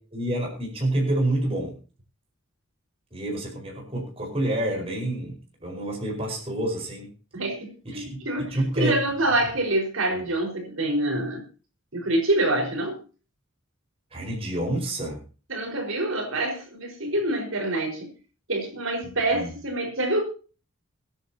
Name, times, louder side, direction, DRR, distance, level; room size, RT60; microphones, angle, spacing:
voice 1, 0.1-1.7 3.1-7.1 7.8-8.1 8.4-9.0 10.1-10.3 14.1-15.2 19.3-19.5, right 1 dB, 30° right, 0 dB, 5.0 m, -28 dB
voice 2, 7.3-11.4 11.9-13.0 15.5-18.1 18.5-20.2, right 1 dB, 80° right, 2 dB, 4.9 m, -26 dB
24.0 x 10.5 x 2.9 m, 0.36 s
head